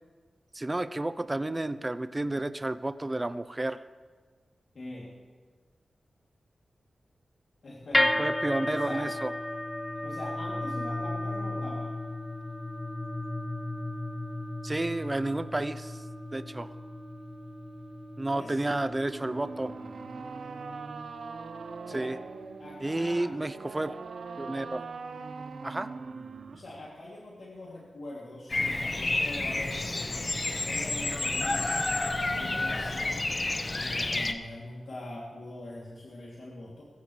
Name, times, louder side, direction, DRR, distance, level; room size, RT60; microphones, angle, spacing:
voice 1, 0.5-3.8 8.2-9.3 14.6-16.0 16.3-16.7 18.2-19.7 21.9-22.2 22.8-23.9 24.4-24.8 25.6-25.9, right 2 dB, 25° right, 12 dB, 0.7 m, -31 dB
voice 2, 4.7-5.1 7.6-9.1 10.0-11.9 18.3-18.8 21.9-22.1 22.6-23.3 26.5-31.8 32.3-33.1 33.7-36.8, left 1 dB, 70° left, -5 dB, 3.0 m, -43 dB
sound 1, 7.9-24.1, left 1 dB, 20° left, 1.6 m, -35 dB
sound 2, 18.9-26.9, right 4 dB, 75° right, 0.7 m, -42 dB
Bird vocalization bird call bird song, 28.5-34.3, left 2 dB, 40° left, 1.2 m, -30 dB
21.5 x 15.0 x 3.3 m, 1.5 s
cardioid pair, 50°, 0 cm